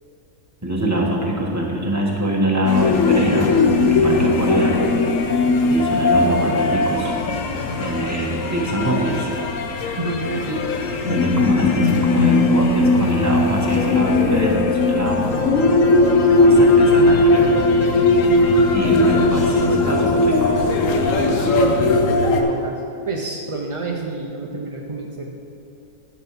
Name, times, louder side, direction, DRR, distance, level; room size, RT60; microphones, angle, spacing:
voice 1, 0.6-3.5 3.8-4.8 5.7-7.1 7.7-9.3 11.1-15.5 16.3-17.5 18.7-20.6, right 1 dB, 10° right, -2 dB, 1.4 m, -23 dB
sound 1, 2.7-22.4, left 2 dB, 60° left, 1.1 m, -18 dB
voice 2, 3.9-4.3 10.0-10.6 18.8-19.2 19.6-19.9 21.2-25.3, right 2 dB, 50° right, 0 dB, 0.3 m, -29 dB
10.5 x 7.4 x 5.9 m, 2.7 s
omnidirectional pair, 1.7 m